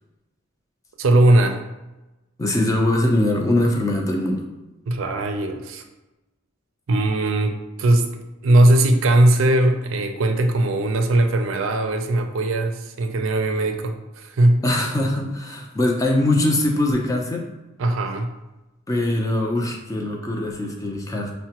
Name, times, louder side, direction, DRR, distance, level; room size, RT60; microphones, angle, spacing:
voice 1, 1.0-1.6 4.9-5.8 6.9-14.6 17.8-18.3, right 1 dB, 70° right, 5 dB, 0.4 m, -19 dB
voice 2, 2.4-4.5 14.6-17.5 18.9-21.3, left 1 dB, 15° left, 0 dB, 0.5 m, -22 dB
5.7 x 2.1 x 2.8 m, 1.0 s
head